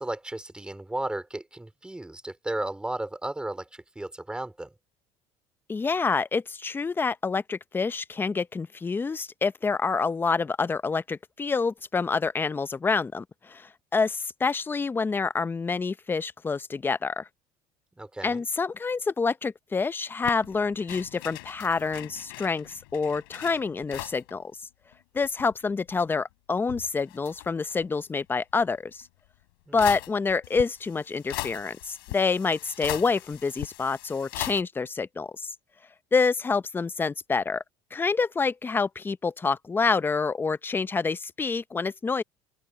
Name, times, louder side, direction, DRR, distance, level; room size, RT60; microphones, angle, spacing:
voice 1, 0.0-4.7 18.0-18.4 29.7-29.9, right 1 dB, 10° right, 3.5 m, -34 dB
voice 2, 5.7-17.3 18.2-24.5 25.1-29.1 29.7-35.5 36.1-37.6 37.9-42.2, left 4 dB, 20° left, 0.7 m, -27 dB
sound 1, 20.2-24.3 24.6-24.7 24.9-26.0 26.6-27.9 29.0-29.1 29.8-34.6, left 24 dB, 90° left, 6.2 m, -39 dB
open air
supercardioid pair, 100°, 11 cm